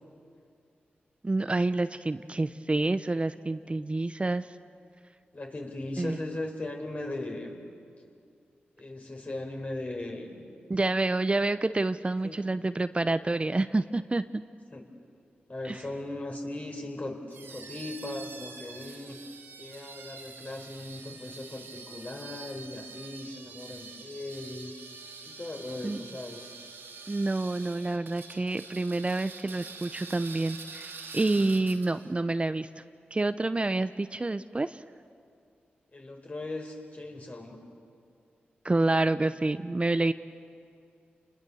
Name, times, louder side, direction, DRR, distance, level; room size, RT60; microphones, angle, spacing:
voice 1, 1.2-4.5 6.0-6.2 10.7-14.4 15.6-15.8 25.8-26.0 27.1-32.8 33.1-34.8 38.6-40.1, right 2 dB, 30° right, 12 dB, 0.7 m, -28 dB
voice 2, 5.3-7.5 8.8-10.5 12.2-12.4 14.7-14.8 15.5-19.2 19.6-24.7 25.2-26.5 35.9-37.7, left 2 dB, 40° left, 2 dB, 4.5 m, -38 dB
sound 1, 17.3-32.1, right 4 dB, 90° right, 3.0 m, -46 dB
28.0 x 21.0 x 7.1 m, 2.4 s
cardioid pair, 50°, 4 cm